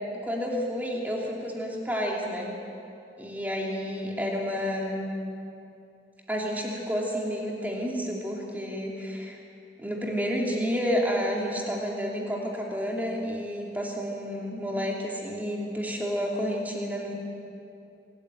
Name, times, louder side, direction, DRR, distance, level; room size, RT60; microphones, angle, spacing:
voice 1, 0.2-2.5 3.2-5.1 6.3-9.4 9.8-17.1, equal, 10° right, -2 dB, 2.9 m, -30 dB
25.5 x 13.5 x 9.2 m, 2.7 s
head